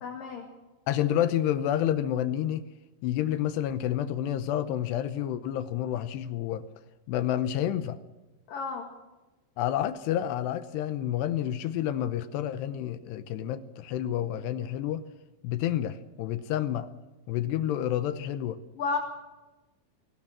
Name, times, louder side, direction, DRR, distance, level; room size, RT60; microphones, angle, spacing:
voice 1, 0.0-0.5 8.5-8.9 18.8-19.0, left 5 dB, 55° left, 1 dB, 3.5 m, -32 dB
voice 2, 0.9-2.7 3.0-6.7 7.1-8.0 9.6-15.1 15.4-16.9 17.3-18.6, left 11 dB, 75° left, 12 dB, 2.7 m, -29 dB
21.5 x 18.0 x 7.5 m, 1.1 s
omnidirectional pair, 5.3 m